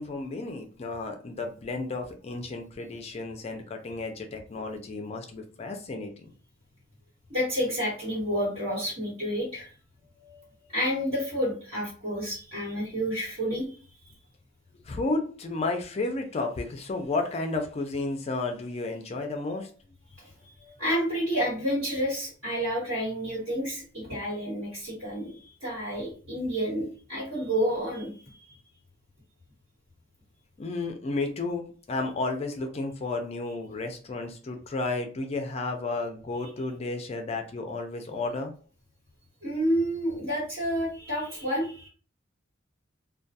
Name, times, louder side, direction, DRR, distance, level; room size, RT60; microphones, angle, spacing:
voice 1, 0.0-6.3 10.2-10.5 10.8-10.9 14.8-19.7 20.6-21.0 30.6-38.5, left 3 dB, 30° left, 5 dB, 0.4 m, -32 dB
voice 2, 7.3-9.7 10.7-13.8 14.0-14.1 20.2-20.5 20.8-28.4 39.4-41.9, equal, 55° right, -9 dB, 1.4 m, -30 dB
2.3 x 2.2 x 2.6 m, 0.39 s
head